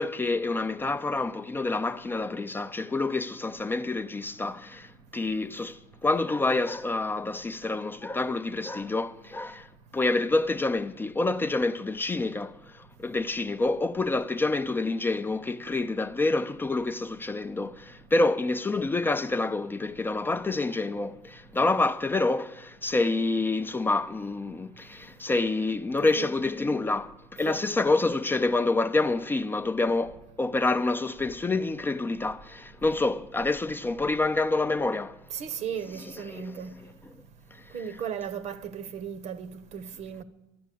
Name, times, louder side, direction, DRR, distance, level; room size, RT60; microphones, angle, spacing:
voice 1, 0.0-9.7 9.9-35.2 36.3-36.6 37.0-37.1, left 2 dB, 15° left, 0.4 m, -27 dB
voice 2, 26.0-26.4 27.4-27.6 35.3-36.7 37.7-40.2, right 8 dB, 55° right, 0.9 m, -36 dB
12.0 x 8.9 x 8.4 m
cardioid pair, 120°, 13 cm